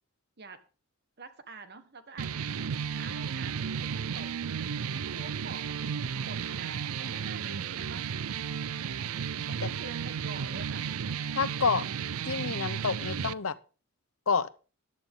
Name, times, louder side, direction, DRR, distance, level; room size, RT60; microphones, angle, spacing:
voice 1, 1.2-4.4 4.9-8.1 9.5-11.0, right 3 dB, 50° right, 10 dB, 1.5 m, -47 dB
sound 1, 2.2-13.3, right 7 dB, 80° right, 0.5 m, -34 dB
voice 2, 11.3-11.8 12.2-13.5 14.3-14.5, left 5 dB, 70° left, 16 dB, 0.8 m, -28 dB
14.5 x 10.5 x 3.8 m, 0.34 s
head